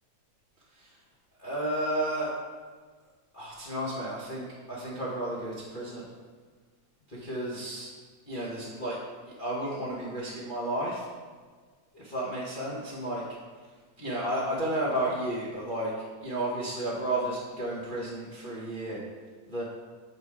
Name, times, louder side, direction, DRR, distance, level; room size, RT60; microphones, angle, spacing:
voice 1, 1.4-2.3 3.3-6.1 7.1-7.9 8.3-9.0 9.4-11.1 11.9-13.2 14.0-15.9 16.2-19.0 19.5-19.6, right 1 dB, 45° left, -7 dB, 0.6 m, -32 dB
7.5 x 5.2 x 4.8 m, 1.5 s
omnidirectional pair, 3.3 m